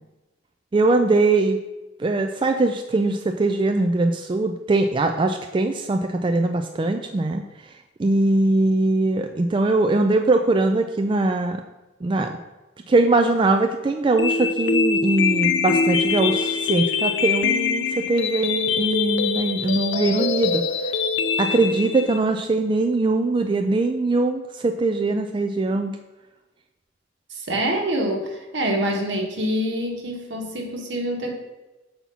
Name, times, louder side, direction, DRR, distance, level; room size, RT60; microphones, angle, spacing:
voice 1, 0.7-1.6 2.0-7.4 8.0-11.6 12.0-12.3 12.9-20.6 21.4-25.9, right 2 dB, 25° right, 5 dB, 0.3 m, -21 dB
sound 1, 14.2-22.2, left 5 dB, 70° left, 0.5 m, -23 dB
voice 2, 27.3-31.3, equal, 70° right, 2 dB, 1.3 m, -26 dB
7.1 x 4.3 x 5.5 m, 1.1 s
head